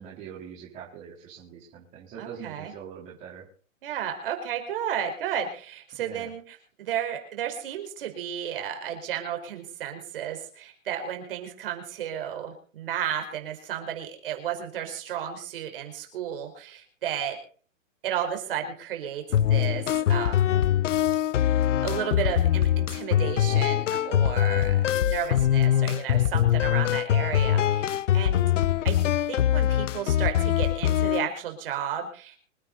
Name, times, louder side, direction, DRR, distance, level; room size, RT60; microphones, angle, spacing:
voice 1, 0.0-3.4 6.0-6.3, right 8 dB, 20° right, -5 dB, 4.0 m, -43 dB
voice 2, 2.2-2.7 3.8-17.4 18.0-19.2 19.5-20.6 21.8-28.5 28.8-28.9 29.3-32.3, right 9 dB, 45° right, 5 dB, 5.0 m, -33 dB
sound 1, 19.3-31.3, left 11 dB, 65° left, 0.7 m, -23 dB
26.0 x 9.3 x 4.2 m, 0.42 s
hypercardioid pair, 170°, 39 cm